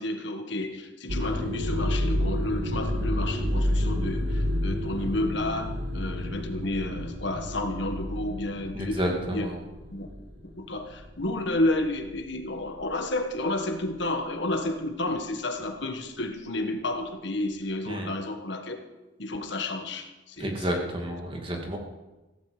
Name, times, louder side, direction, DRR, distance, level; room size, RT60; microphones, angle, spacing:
voice 1, 0.0-9.5 9.9-10.1 10.6-18.8 19.2-20.8, left 1 dB, 65° left, 6 dB, 1.6 m, -31 dB
sound 1, 1.1-10.5 10.9-11.3 12.0-12.3, left 1 dB, 70° right, 2.4 m, -29 dB
voice 2, 8.7-9.6 17.9-18.1 20.4-21.8, equal, 25° right, 1 dB, 2.4 m, -30 dB
16.0 x 14.5 x 5.1 m, 1.1 s
head